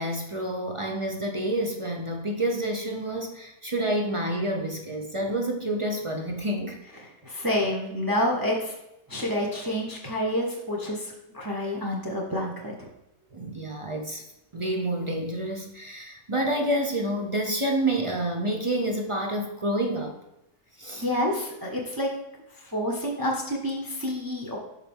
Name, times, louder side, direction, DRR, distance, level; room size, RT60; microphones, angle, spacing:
voice 1, 0.0-6.8 13.3-14.2 14.5-20.2 20.8-21.0, right 1 dB, 35° right, 2 dB, 0.5 m, -28 dB
voice 2, 7.2-8.7 9.1-12.9 21.0-22.1 22.7-24.6, left 1 dB, 15° right, -1 dB, 1.0 m, -28 dB
7.3 x 5.4 x 3.7 m, 0.88 s
omnidirectional pair, 1.6 m